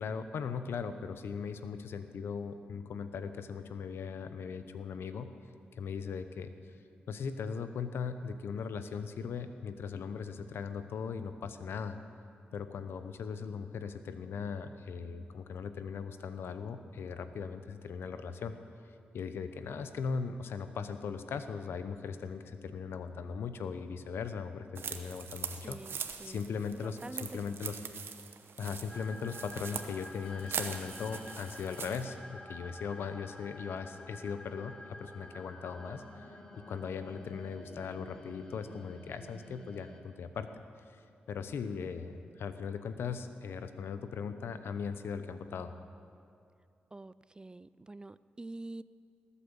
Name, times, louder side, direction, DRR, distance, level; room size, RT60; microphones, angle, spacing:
voice 1, 0.0-5.3 5.8-6.5 7.1-12.0 12.5-18.5 19.1-27.8 28.6-36.3 36.7-40.5 40.9-41.0 41.3-45.7, left 6 dB, 80° left, 10 dB, 0.8 m, -39 dB
sound 1, 24.8-32.0, right 6 dB, 75° right, 1.0 m, -42 dB
voice 2, 25.6-26.4 26.8-27.6 46.9-48.8, right 2 dB, 20° right, 17 dB, 0.4 m, -46 dB
sound 2, 28.9-40.0, left 1 dB, 20° left, 2.2 m, -50 dB
19.5 x 8.5 x 7.1 m, 2.4 s
cardioid pair, 60°, 4 cm